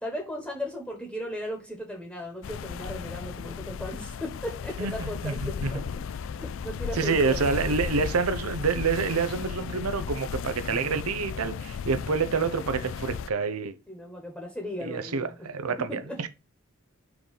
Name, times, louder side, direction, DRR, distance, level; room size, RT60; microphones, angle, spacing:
voice 1, 0.0-5.8 6.2-7.5 13.9-15.4 15.9-16.2, left 1 dB, 5° left, 1.2 m, -36 dB
sound 1, 2.4-13.3, left 6 dB, 65° left, 0.3 m, -35 dB
voice 2, 4.8-5.8 6.9-13.8 14.8-16.3, right 5 dB, 90° right, 0.7 m, -28 dB
4.6 x 3.9 x 5.2 m
head